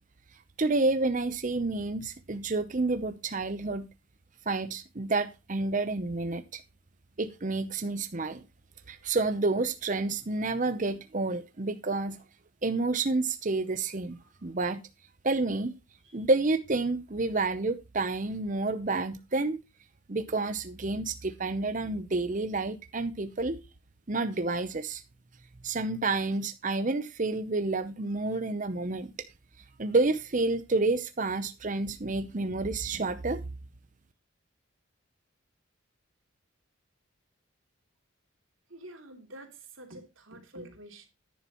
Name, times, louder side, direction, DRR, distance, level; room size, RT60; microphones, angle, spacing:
voice 1, 0.6-3.9 4.5-6.6 7.2-8.4 8.9-12.2 12.6-14.2 14.4-14.8 15.2-15.7 16.1-19.6 20.1-23.6 24.1-25.0 25.6-29.1 29.8-33.4, right 3 dB, 35° right, 0.7 m, -29 dB
voice 2, 38.7-41.1, right 1 dB, 70° right, 2.9 m, -48 dB
11.5 x 10.5 x 3.0 m
head